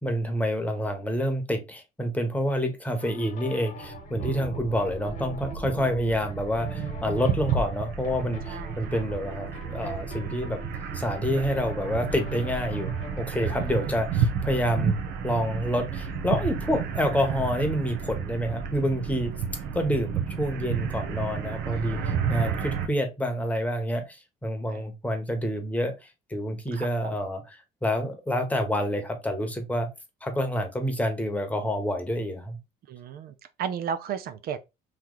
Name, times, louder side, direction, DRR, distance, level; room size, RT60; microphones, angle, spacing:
voice 1, 0.0-10.6 10.9-12.9 13.2-15.0 15.2-19.3 19.7-22.0 22.3-27.4 27.8-29.9 30.2-32.6, equal, 10° left, 1.0 m, -28 dB
sound 1, 3.0-13.5, left 3 dB, 50° left, 1.2 m, -44 dB
sound 2, 3.8-22.9, right 6 dB, 85° right, 0.8 m, -31 dB
voice 2, 8.5-9.0 13.4-13.9 21.7-22.3 24.7-24.9 26.7-27.2 32.9-34.6, right 8 dB, 65° right, 0.5 m, -36 dB
3.2 x 2.9 x 3.8 m
cardioid pair, 110°, 17 cm